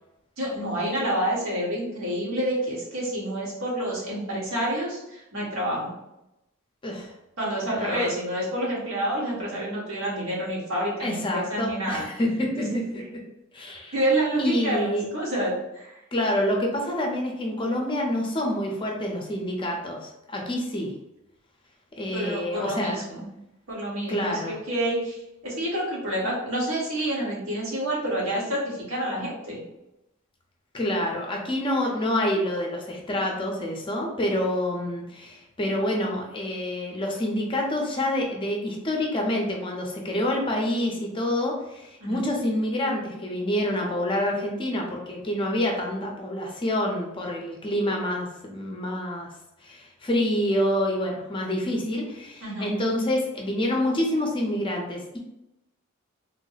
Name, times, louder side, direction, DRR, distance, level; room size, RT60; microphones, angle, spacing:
voice 1, 0.4-5.9 7.4-12.1 12.6-12.8 13.9-16.0 22.1-23.2 23.7-29.6 42.0-42.2 52.4-52.7, right 1 dB, 75° right, -5 dB, 1.4 m, -28 dB
voice 2, 6.8-7.1 7.7-8.1 11.0-13.0 13.5-14.0 14.4-15.1 16.1-20.9 22.0-23.0 24.1-24.6 30.7-49.3 49.6-55.2, left 1 dB, 25° left, 0 dB, 0.6 m, -27 dB
3.5 x 2.0 x 3.9 m, 0.88 s
head